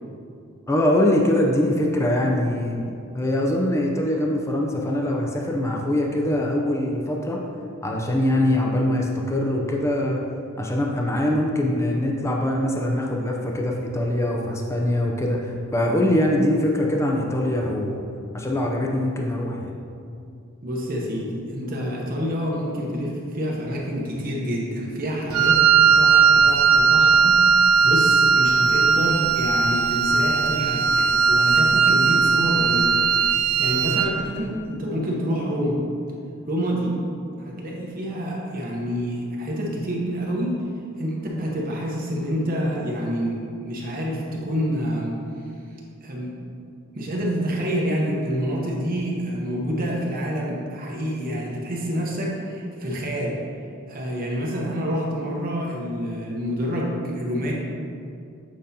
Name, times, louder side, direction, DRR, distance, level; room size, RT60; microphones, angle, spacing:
voice 1, 0.7-2.8 3.1-7.4 7.8-10.2 10.6-18.0 18.3-19.7, left 1 dB, 15° left, 0 dB, 0.5 m, -23 dB
voice 2, 20.6-25.6 25.9-32.9 33.3-35.8 36.5-37.0 37.4-40.6 41.0-45.2 46.0-46.4 46.9-53.4 53.9-57.5, equal, 45° right, -3 dB, 0.9 m, -27 dB
Wind instrument woodwind instrument, 25.3-34.2, right 5 dB, 85° right, 0.4 m, -18 dB
7.6 x 5.1 x 2.8 m, 2.5 s
head